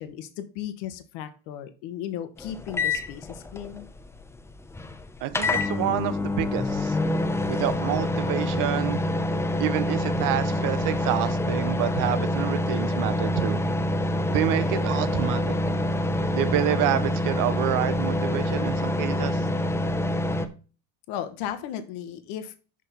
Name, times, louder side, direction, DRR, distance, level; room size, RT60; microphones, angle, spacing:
voice 1, 0.0-3.9 21.1-22.5, left 10 dB, 85° left, 10 dB, 1.1 m, -35 dB
sound 1, 2.4-20.5, left 1 dB, 5° left, 0.4 m, -26 dB
voice 2, 5.2-7.0 7.5-9.0 9.6-13.6 14.3-15.6 16.3-19.4, right 13 dB, 60° right, 13 dB, 0.8 m, -28 dB
6.3 x 5.3 x 4.1 m, 0.36 s
cardioid pair, 145°, 37 cm